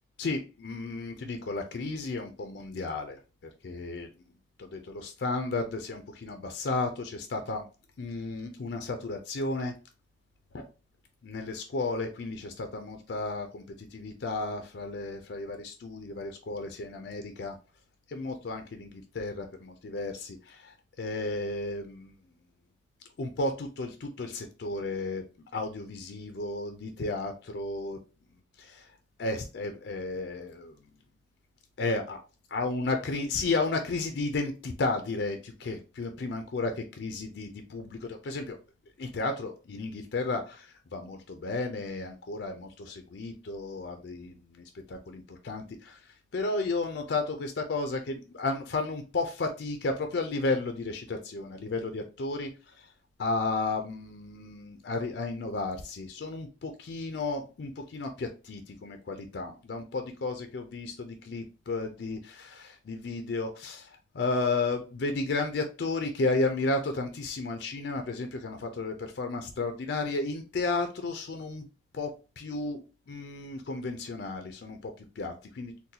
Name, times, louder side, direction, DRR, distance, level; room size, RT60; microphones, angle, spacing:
voice 1, 0.2-3.2 3.6-4.1 4.6-7.7 8.0-9.7 10.5-10.6 11.2-17.6 18.1-22.2 23.2-25.2 25.5-28.0 28.6-28.9 29.2-30.8 31.8-32.2 32.5-38.6 39.0-52.9 53.2-71.6 71.9-72.1 72.4-72.8 73.1-75.7, left 3 dB, 65° left, 6 dB, 0.4 m, -33 dB
3.9 x 2.2 x 2.7 m, 0.32 s
head